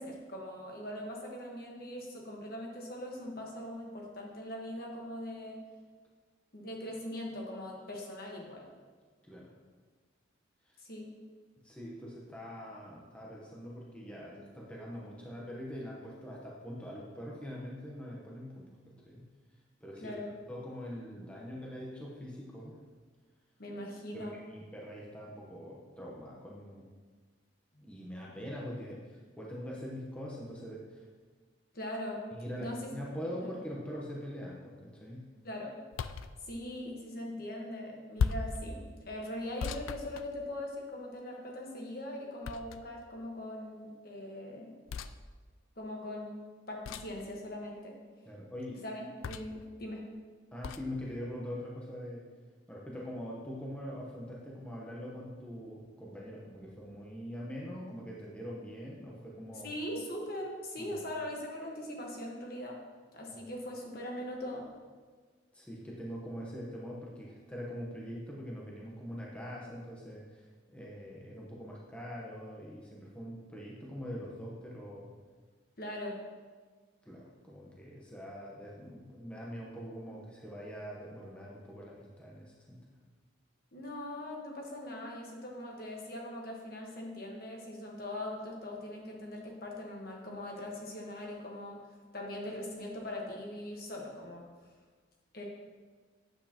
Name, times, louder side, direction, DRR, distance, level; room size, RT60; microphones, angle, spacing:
voice 1, 0.0-5.6 6.5-8.7 10.8-11.1 20.0-20.3 23.6-24.3 27.7-27.8 31.7-32.3 32.6-32.9 33.4-33.5 35.4-35.7 36.5-44.7 45.8-46.4 46.7-48.0 48.8-50.0 59.6-62.8 63.1-64.7 75.8-76.2 83.7-91.9 92.1-94.5 95.3-95.4, left 1 dB, 50° left, 0 dB, 1.3 m, -41 dB
voice 2, 11.6-19.3 19.8-20.2 20.5-22.8 24.1-26.8 27.8-31.0 32.3-35.3 48.3-48.8 50.5-52.2 52.7-59.7 60.8-61.0 63.3-63.4 65.5-75.1 77.0-83.0, equal, 5° left, -4 dB, 0.9 m, -43 dB
sound 1, 35.9-36.3 38.2-38.6 39.6-40.8 42.4-43.0 44.9-45.1 46.8-47.2 49.2-49.6 50.6-50.9, left 5 dB, 80° left, 0.3 m, -36 dB
8.9 x 8.0 x 2.9 m, 1.5 s
head